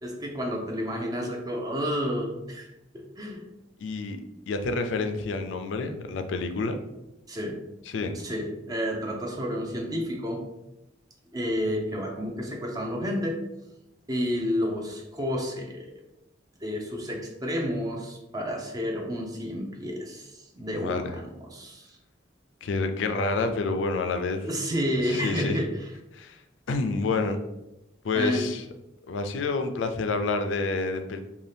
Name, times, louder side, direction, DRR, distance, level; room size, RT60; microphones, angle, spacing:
voice 1, 0.0-2.7 2.9-3.4 7.3-7.6 8.1-10.4 11.3-13.4 14.1-15.9 16.6-22.0 24.4-25.9 28.1-28.5, equal, 20° right, 1 dB, 0.4 m, -30 dB
voice 2, 3.8-4.2 4.5-6.8 7.9-8.1 20.6-21.1 22.6-24.4 25.1-25.6 26.1-26.4 26.7-27.4 28.0-28.6 29.1-31.2, left 3 dB, 75° left, 6 dB, 0.4 m, -28 dB
2.7 x 2.3 x 3.3 m, 0.91 s
head